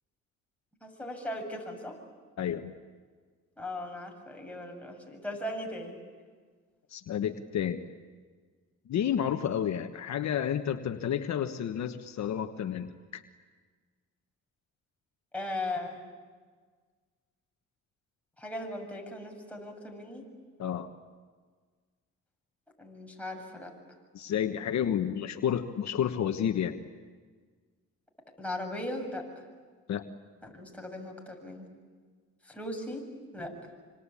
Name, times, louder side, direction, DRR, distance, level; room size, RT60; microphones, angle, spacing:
voice 1, 0.8-2.0 3.6-6.0 15.3-16.0 18.4-20.2 22.8-23.7 28.4-29.2 30.4-31.7 32.5-33.1 33.3-33.5, left 1 dB, 5° left, 0 dB, 7.4 m, -38 dB
voice 2, 2.4-2.7 6.9-7.8 8.9-13.2 20.6-20.9 24.1-26.8 29.9-30.0, left 9 dB, 65° left, 7 dB, 1.3 m, -30 dB
26.5 x 26.0 x 8.6 m, 1.5 s
cardioid pair, 90°, 30 cm